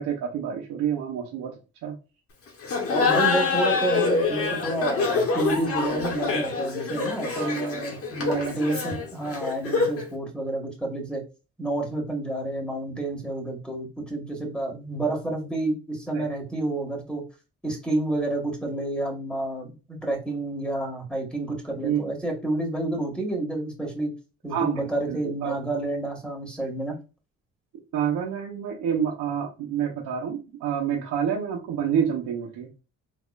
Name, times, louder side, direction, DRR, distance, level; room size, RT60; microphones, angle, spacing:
voice 1, 0.0-1.5 1.8-2.0 7.2-7.7 8.3-8.8 16.1-16.3 21.8-22.1 24.5-25.5 27.9-32.7, right 8 dB, 90° right, -3 dB, 0.9 m, -28 dB
Laughter, 2.6-10.1, left 4 dB, 50° left, 1.3 m, -26 dB
voice 2, 2.9-11.2 11.6-17.2 17.6-24.1 24.4-27.0, right 2 dB, 5° left, 0 dB, 1.9 m, -29 dB
3.6 x 3.0 x 2.5 m, 0.31 s
cardioid pair, 90°, 30 cm